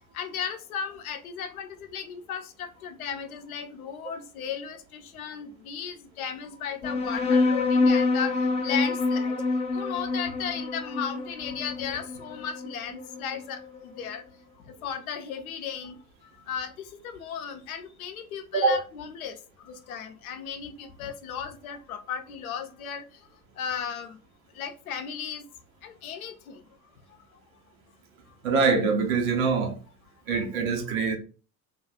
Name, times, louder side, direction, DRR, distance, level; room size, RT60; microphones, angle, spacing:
voice 1, 0.1-8.3 8.6-9.3 9.7-14.2 14.8-16.0 16.5-16.7 17.0-19.4 19.6-23.0 23.6-24.2 24.6-25.4 25.8-26.6, left 7 dB, 65° left, 0.7 m, -35 dB
sound 1, 6.8-13.8, left 3 dB, 15° left, 0.5 m, -26 dB
voice 2, 28.4-29.8 30.3-31.2, right 4 dB, 60° right, 0.9 m, -24 dB
2.6 x 2.3 x 3.5 m
figure-of-eight pair, 65°, 46 cm